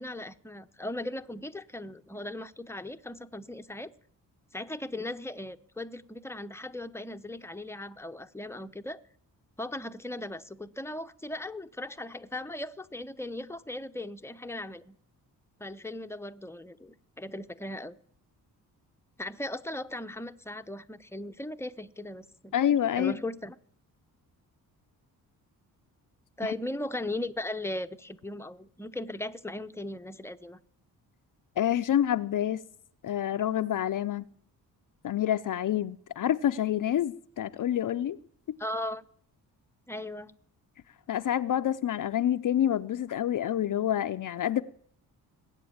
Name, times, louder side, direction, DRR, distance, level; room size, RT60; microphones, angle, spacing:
voice 1, 0.0-3.9 4.5-9.0 9.6-15.0 15.6-17.9 19.2-22.6 23.0-23.5 26.4-30.6 38.6-39.1 39.9-40.3, left 1 dB, 5° left, 0.8 m, -38 dB
voice 2, 22.5-23.2 26.4-26.5 31.6-32.6 33.0-34.2 35.0-38.2 38.5-38.6 41.1-44.6, left 10 dB, 55° left, 0.7 m, -27 dB
20.0 x 8.3 x 8.7 m
cardioid pair, 85°, 38 cm